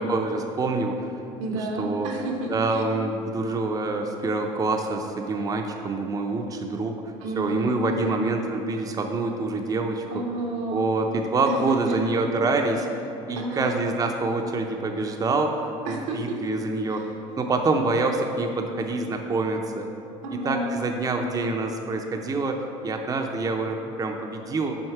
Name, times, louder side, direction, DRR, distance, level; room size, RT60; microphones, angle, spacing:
voice 1, 0.1-1.2 1.8-2.1 2.5-10.2 10.7-12.9 13.3-17.0 17.4-19.9 20.3-22.6 22.8-24.8, right 3 dB, 25° right, 3 dB, 0.6 m, -26 dB
voice 2, 1.4-2.9 7.2-8.2 10.1-10.9 11.5-12.0 13.4-13.7 15.8-16.4 16.9-17.0 20.2-20.8, right 2 dB, 85° right, 0 dB, 1.1 m, -30 dB
6.4 x 4.1 x 4.7 m, 2.8 s
supercardioid pair, 90°, 15 cm